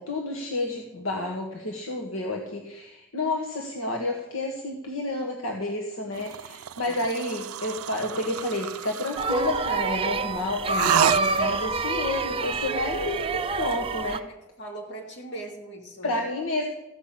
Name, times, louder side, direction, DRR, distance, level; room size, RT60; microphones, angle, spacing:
voice 1, 0.0-14.2 16.0-16.7, left 2 dB, 70° left, 1 dB, 1.5 m, -30 dB
voice 2, 6.1-6.5 6.8-7.1 12.9-13.2 14.3-16.3, right 1 dB, 55° left, 0 dB, 2.9 m, -41 dB
sound 1, 6.2-9.6 10.7-11.7, right 9 dB, 90° right, 0.4 m, -30 dB
sound 2, 9.2-14.2, right 3 dB, 25° right, 0.6 m, -27 dB
15.0 x 5.9 x 8.6 m, 1.0 s
head